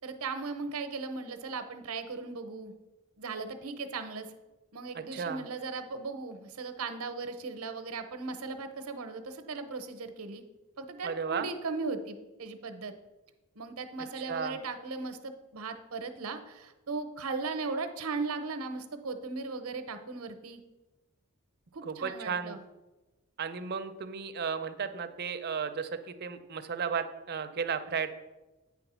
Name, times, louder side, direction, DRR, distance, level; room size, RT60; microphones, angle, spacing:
voice 1, 0.0-2.7 3.2-4.3 4.7-10.4 10.8-12.9 13.6-20.6 21.7-22.6, right 4 dB, 85° right, 9 dB, 0.7 m, -37 dB
voice 2, 4.9-5.4 11.0-11.5 14.3-14.6 21.8-22.6 23.4-28.1, right 6 dB, 45° right, 9 dB, 0.5 m, -34 dB
8.9 x 3.6 x 6.0 m, 1.1 s
head